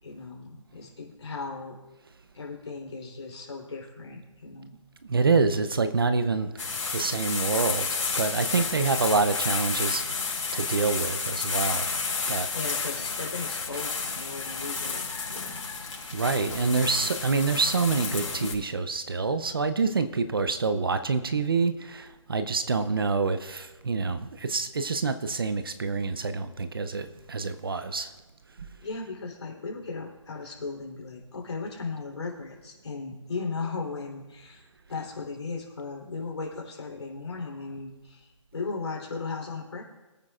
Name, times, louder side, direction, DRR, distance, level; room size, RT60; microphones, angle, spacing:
voice 1, 0.0-1.8 2.3-4.7 8.5-8.9 12.5-15.7 28.8-34.6 34.9-39.8, left 4 dB, 55° left, -2 dB, 3.5 m, -37 dB
voice 2, 5.1-11.9 12.3-12.5 16.1-28.1, right 4 dB, 45° right, 11 dB, 0.7 m, -27 dB
sound 1, 6.6-18.5, left 5 dB, 75° left, 4.6 m, -31 dB
23.5 x 9.2 x 2.5 m, 1.2 s
hypercardioid pair, 175°, 17 cm